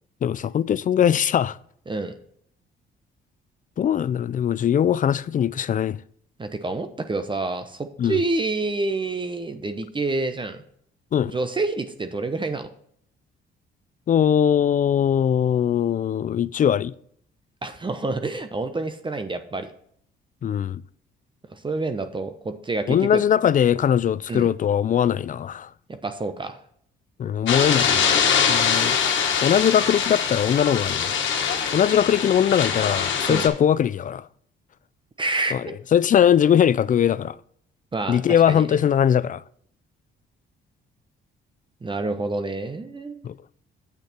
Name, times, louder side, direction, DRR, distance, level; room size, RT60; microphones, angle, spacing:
voice 1, 0.2-1.6 3.8-6.0 8.0-8.2 11.1-11.3 14.1-16.9 20.4-20.8 22.9-25.7 27.2-29.0 29.4-31.2 31.7-34.2 35.5-35.6 35.9-37.4 38.1-39.4 43.2-43.3, left 9 dB, 40° left, 0.4 m, -21 dB
voice 2, 6.4-10.6 11.3-12.7 17.6-19.7 21.5-23.2 24.3-24.5 26.0-26.6 33.2-33.5 35.2-35.7 37.9-38.8 41.8-43.2, right 3 dB, 25° right, 0.9 m, -28 dB
sound 1, 27.5-33.5, left 7 dB, 70° left, 1.5 m, -23 dB
8.4 x 6.6 x 4.3 m
cardioid pair, 90°, 20 cm